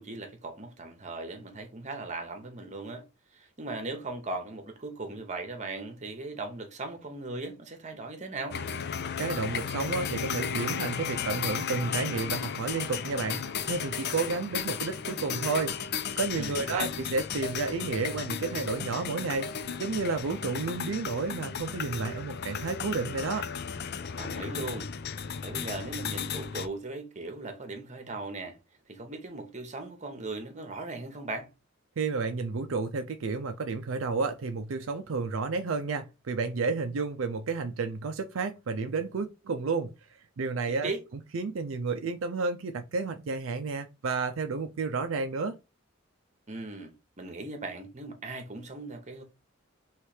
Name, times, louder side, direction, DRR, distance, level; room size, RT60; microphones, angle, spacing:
voice 1, 0.0-3.0 3.3-8.6 16.4-16.9 24.2-24.9 25.4-28.6 28.9-31.5 40.8-41.0 46.5-49.2, right 2 dB, 35° right, 1.0 m, -38 dB
sound 1, 8.5-26.7, left 7 dB, 55° left, 0.5 m, -34 dB
voice 2, 9.2-15.7 16.2-19.5 19.8-23.5 32.0-40.9 41.3-45.5, right 4 dB, 70° right, 0.5 m, -31 dB
3.2 x 3.2 x 4.8 m
head